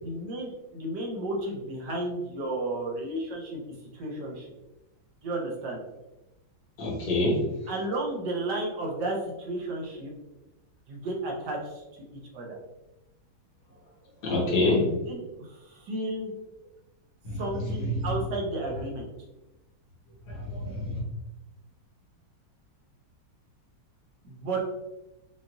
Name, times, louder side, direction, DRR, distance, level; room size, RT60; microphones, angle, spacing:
voice 1, 0.0-3.6 3.9-4.5 5.2-5.8 7.7-10.1 10.9-11.8 12.3-12.6 14.5-16.3 17.4-19.1 24.2-24.6, right 2 dB, 60° right, -1 dB, 1.4 m, -33 dB
voice 2, 6.8-7.5 14.2-14.9 17.3-18.1 20.3-21.0, left 2 dB, 55° left, -4 dB, 1.8 m, -27 dB
5.8 x 2.5 x 2.6 m, 1.0 s
omnidirectional pair, 2.2 m